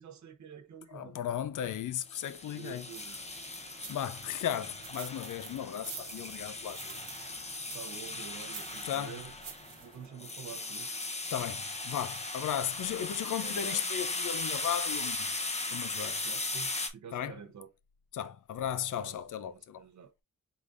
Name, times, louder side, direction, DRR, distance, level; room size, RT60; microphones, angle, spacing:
voice 1, 0.0-1.2 2.6-3.2 7.7-9.3 9.8-10.9 12.8-13.1 13.4-13.9 16.2-17.7 18.9-20.1, right 7 dB, 60° right, 0.7 m, -48 dB
voice 2, 0.9-2.9 3.9-7.0 8.8-9.1 11.3-15.3 15.7-16.3 17.1-17.4 18.1-19.8, left 10 dB, 75° left, 0.5 m, -36 dB
sound 1, 2.1-16.9, left 2 dB, 20° left, 0.7 m, -38 dB
sound 2, 2.9-10.1, right 7 dB, 85° right, 1.0 m, -49 dB
4.9 x 3.7 x 2.4 m
wide cardioid pair, 155°, 32 cm